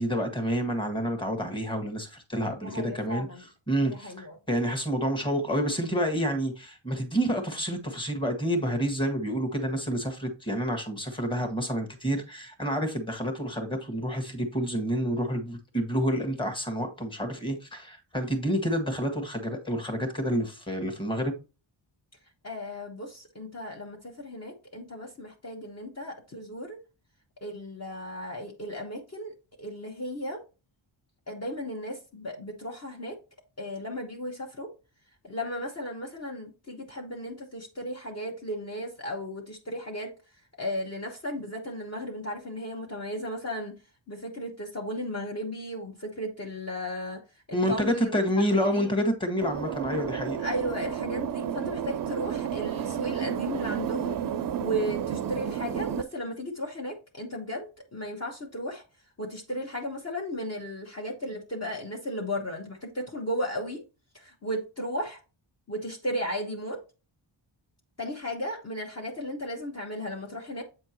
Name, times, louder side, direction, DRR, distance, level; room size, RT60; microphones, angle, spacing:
voice 1, 0.0-21.3 47.5-50.4, equal, 10° left, 1.5 m, -29 dB
voice 2, 2.6-3.4 3.8-4.4 22.4-26.8 27.4-30.4 31.3-33.2 33.6-34.7 35.2-40.1 40.6-43.8 44.1-47.2 47.5-48.1 48.5-48.9 50.4-54.2 54.6-58.8 59.2-63.8 64.1-65.2 65.7-66.8 68.0-70.6, equal, 30° left, 1.3 m, -35 dB
sound 1, 49.4-56.0, right 9 dB, 45° right, 0.5 m, -31 dB
7.8 x 4.4 x 2.9 m
cardioid pair, 85°, 48 cm